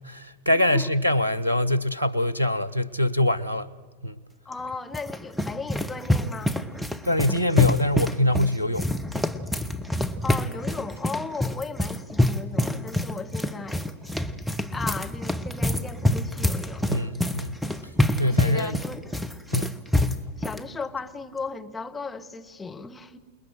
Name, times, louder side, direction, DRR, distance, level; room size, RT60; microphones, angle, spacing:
voice 1, 0.0-3.7 4.0-4.2 7.0-8.9 16.9-17.6 18.2-18.8 19.5-19.8, left 1 dB, 85° right, 0.8 m, -24 dB
voice 2, 0.5-0.9 4.4-6.6 10.2-13.9 14.7-16.9 18.2-19.0 20.4-23.2, left 4 dB, 10° left, 1.3 m, -36 dB
sound 1, 4.5-20.6, left 1 dB, 5° right, 1.3 m, -27 dB
28.0 x 20.5 x 9.5 m
figure-of-eight pair, 90°, 0 cm